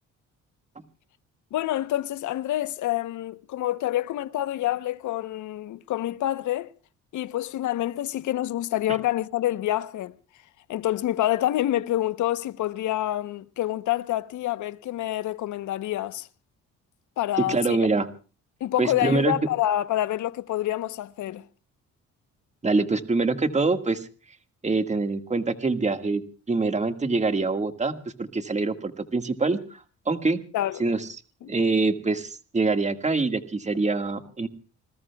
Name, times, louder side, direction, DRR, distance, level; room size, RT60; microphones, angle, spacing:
voice 1, 1.5-6.7 7.1-10.1 10.7-16.3 17.2-17.8 18.6-21.4 30.5-30.9 31.4-31.5, left 13 dB, 75° left, 0.9 m, -27 dB
voice 2, 17.5-18.1 18.8-19.3 22.6-24.1 24.6-26.2 26.5-29.8 30.1-30.4 30.8-31.0 31.5-34.5, right 3 dB, 25° right, 1.8 m, -25 dB
27.0 x 21.0 x 2.3 m
cardioid pair, 90°, 30 cm